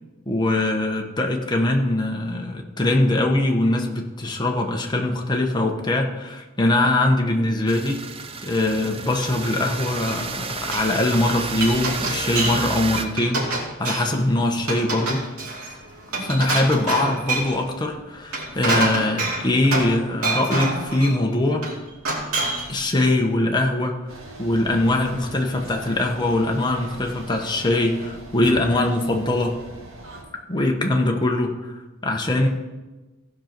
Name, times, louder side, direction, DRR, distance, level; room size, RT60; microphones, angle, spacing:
voice 1, 0.3-8.0 8.4-13.4 13.8-15.2 16.2-21.6 22.7-23.9 24.4-29.6 30.5-31.7 32.0-32.5, left 1 dB, 20° left, 2 dB, 1.0 m, -22 dB
sound 1, 7.7-13.1, right 4 dB, 25° right, 0.6 m, -31 dB
Glass, 9.4-10.3 10.6-10.9 11.3-12.7 12.9-14.2 14.6-17.6 18.2-20.0 20.2-21.2 21.6-22.7, right 2 dB, 85° right, 2.6 m, -27 dB
sound 2, 24.1-30.2, right 1 dB, 65° right, 2.1 m, -40 dB
15.5 x 5.3 x 5.9 m, 1.2 s
head